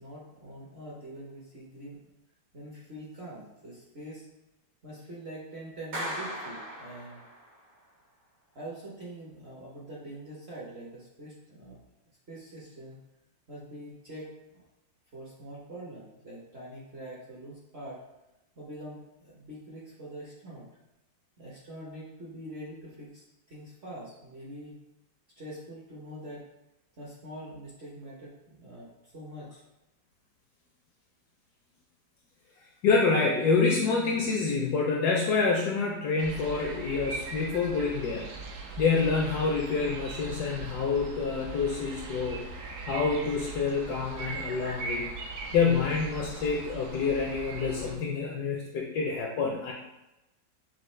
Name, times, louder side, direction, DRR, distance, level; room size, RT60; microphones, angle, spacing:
voice 1, 0.0-2.0 2.5-4.3 4.8-7.2 8.5-11.8 12.3-13.0 13.5-14.6 15.1-18.0 18.6-20.7 21.4-24.8 25.4-26.4 27.0-29.6, right 1 dB, 45° right, -6 dB, 0.9 m, -44 dB
Clapping, 5.9-7.6, equal, 90° right, 2.0 m, -37 dB
voice 2, 32.8-38.3 38.8-42.4 42.9-45.1 45.5-49.7, left 4 dB, 70° left, -1 dB, 1.0 m, -27 dB
sound 1, 36.2-48.0, right 3 dB, 70° right, 1.1 m, -40 dB
6.0 x 2.4 x 3.1 m, 0.95 s
omnidirectional pair, 2.1 m